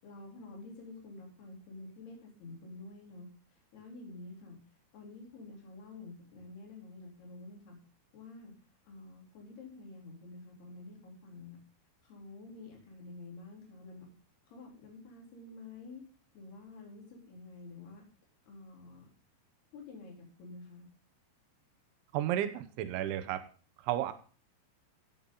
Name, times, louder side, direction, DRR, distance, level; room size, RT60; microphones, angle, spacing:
voice 1, 0.0-4.6 4.9-7.8 8.1-8.5 8.8-11.6 12.0-14.1 14.5-16.0 16.3-18.0 18.5-19.1 19.7-20.9, left 3 dB, 60° left, -1 dB, 5.9 m, -49 dB
voice 2, 22.1-23.4 23.8-24.1, right 12 dB, 80° right, 9 dB, 3.4 m, -32 dB
15.0 x 8.7 x 3.9 m, 0.39 s
omnidirectional pair, 5.3 m